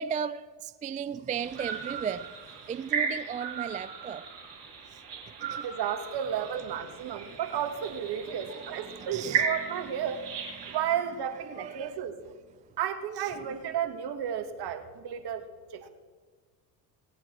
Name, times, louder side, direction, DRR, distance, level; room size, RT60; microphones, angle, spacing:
voice 1, 0.0-4.3 4.9-5.8 6.9-7.4 8.5-10.1 10.5-10.8 11.5-12.0 13.2-13.5, right 7 dB, 20° right, 0.3 m, -37 dB
sound 1, 1.4-10.8, right 6 dB, 90° right, 2.8 m, -36 dB
voice 2, 5.6-10.2 10.7-12.1 12.8-15.4 15.7-15.9, right 9 dB, 55° right, 1.9 m, -33 dB
19.5 x 8.8 x 6.3 m
hypercardioid pair, 65°, 48 cm